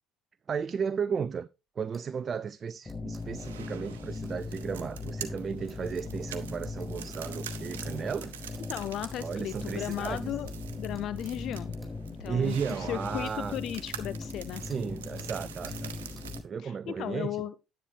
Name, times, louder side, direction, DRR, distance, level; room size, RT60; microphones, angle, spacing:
voice 1, 0.5-1.5 1.8-8.4 9.2-10.3 12.3-13.6 14.6-15.9 16.4-17.4, right 6 dB, 40° right, 0.4 m, -34 dB
sound 1, 1.9-2.1 2.9-3.2 4.2-4.4 5.7-5.8 6.8-6.9 7.6-7.7 8.5-8.7 9.0-9.2 9.9-10.0 10.5-10.6 10.9-11.9 12.7-12.8 13.2-13.4 13.7-13.9 14.2-14.3 14.7-14.8 15.2-15.3 15.7-15.8 16.1-16.3, right 2 dB, 15° right, 4.2 m, -57 dB
sound 2, 2.9-16.4, left 3 dB, 20° left, 0.7 m, -39 dB
sound 3, 3.1-16.4, right 9 dB, 85° right, 0.9 m, -45 dB
voice 2, 8.7-10.5 10.8-11.7 12.2-14.6 16.6-17.5, left 11 dB, 60° left, 0.4 m, -35 dB
9.9 x 8.6 x 3.3 m
hypercardioid pair, 60°, 0 cm